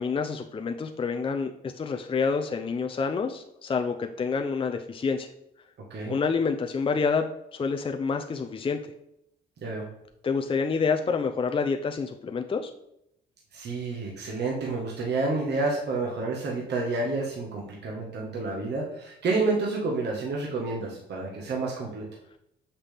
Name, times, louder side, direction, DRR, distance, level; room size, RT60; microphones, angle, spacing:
voice 1, 0.0-5.3 6.1-7.3 7.5-8.9 10.2-12.7, left 5 dB, 25° left, 5 dB, 0.5 m, -28 dB
voice 2, 13.5-22.0, right 3 dB, 60° right, -2 dB, 1.4 m, -29 dB
6.7 x 5.8 x 3.4 m, 0.78 s
cardioid pair, 90°, 20 cm